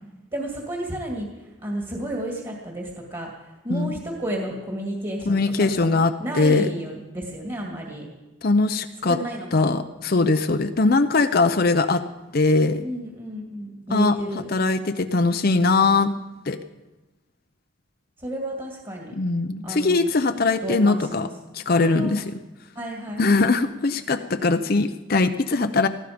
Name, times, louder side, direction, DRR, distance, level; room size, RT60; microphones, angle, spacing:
voice 1, 0.3-1.3 1.6-3.3 3.6-8.1 9.1-9.8 12.8-14.5 18.2-19.1 19.6-20.1 20.6-21.3 21.7-22.1 22.7-23.4, right 1 dB, 25° right, 0 dB, 2.2 m, -32 dB
voice 2, 3.7-4.0 5.3-6.7 8.4-9.2 9.5-12.0 12.3-12.9 13.9-14.2 14.5-16.1 16.5-16.6 19.1-21.3 21.5-22.4 23.2-25.9, left 3 dB, 45° left, 9 dB, 0.6 m, -21 dB
19.0 x 15.0 x 5.1 m, 1.1 s
head